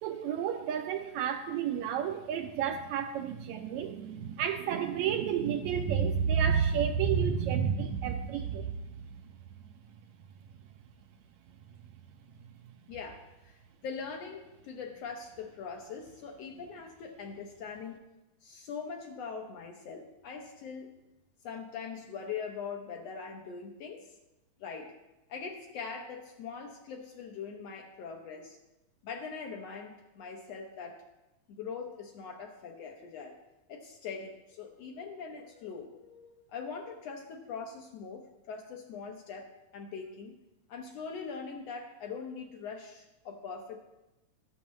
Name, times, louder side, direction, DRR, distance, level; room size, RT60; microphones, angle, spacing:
voice 1, 0.0-9.3 12.4-12.5, right 7 dB, 80° right, 6 dB, 1.7 m, -30 dB
voice 2, 12.9-18.0 18.4-20.9 21.4-24.1 24.6-25.0 25.3-28.6 29.0-31.0 31.5-33.4 33.7-40.3 40.7-43.8, left 5 dB, 70° left, 3 dB, 1.7 m, -42 dB
12.5 x 12.0 x 3.1 m, 0.99 s
omnidirectional pair, 3.6 m